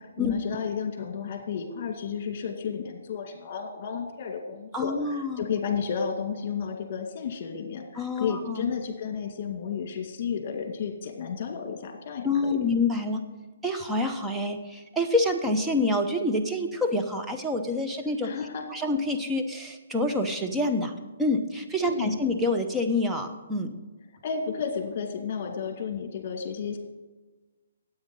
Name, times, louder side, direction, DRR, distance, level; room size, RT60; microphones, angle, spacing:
voice 1, 0.2-12.7 18.2-18.7 21.8-22.2 24.2-26.8, left 6 dB, 45° left, 4 dB, 2.1 m, -32 dB
voice 2, 4.7-5.5 8.0-8.7 12.2-13.2 13.6-18.3 18.7-20.9 21.2-23.7, left 2 dB, 5° right, 3 dB, 0.8 m, -27 dB
9.5 x 8.5 x 5.3 m, 1.2 s
hypercardioid pair, 155°, 0 cm